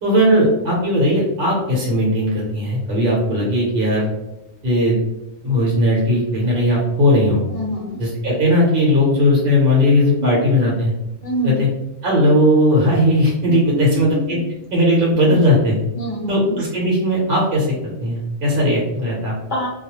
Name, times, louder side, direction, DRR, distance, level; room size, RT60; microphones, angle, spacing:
voice 1, 0.0-4.1 4.6-5.0 5.4-7.4 8.0-10.9 11.4-11.7 12.0-14.4 14.7-15.8 16.3-19.3, left 1 dB, 50° right, -5 dB, 0.9 m, -17 dB
voice 2, 7.5-8.0 10.1-10.3 11.2-11.6 13.4-14.4 15.3-15.5 16.0-16.6 19.5-19.7, equal, 50° left, -4 dB, 0.6 m, -26 dB
2.3 x 2.0 x 2.9 m, 0.90 s
omnidirectional pair, 1.3 m